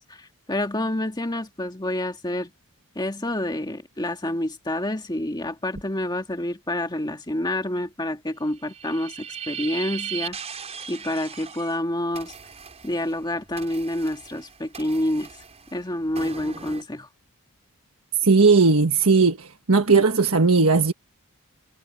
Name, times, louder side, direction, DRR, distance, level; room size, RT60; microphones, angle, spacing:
voice 1, 0.0-2.5 3.0-10.5 10.9-12.3 12.8-15.3 15.7-17.1, left 1 dB, 20° left, 2.0 m, -28 dB
sound 1, 8.5-11.8 12.1-16.8, right 7 dB, 30° right, 5.3 m, -38 dB
voice 2, 18.2-20.9, right 4 dB, 70° right, 1.4 m, -17 dB
head